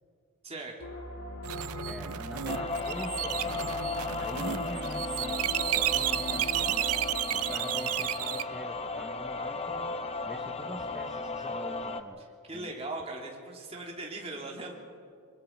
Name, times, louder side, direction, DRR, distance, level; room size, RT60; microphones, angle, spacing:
voice 1, 0.4-0.7 12.4-14.7, right 2 dB, 25° right, -1 dB, 3.1 m, -39 dB
sound 1, 0.8-7.2, equal, 70° left, 2.8 m, -41 dB
sound 2, 1.4-8.4, right 13 dB, 80° right, 0.6 m, -32 dB
voice 2, 1.8-3.8 4.2-6.9 7.3-10.0 10.3-12.2 12.5-12.7, equal, 5° right, 0 dB, 1.0 m, -44 dB
sound 3, 2.5-12.0, left 3 dB, 25° left, 0.9 m, -35 dB
25.5 x 23.5 x 4.6 m, 2.3 s
head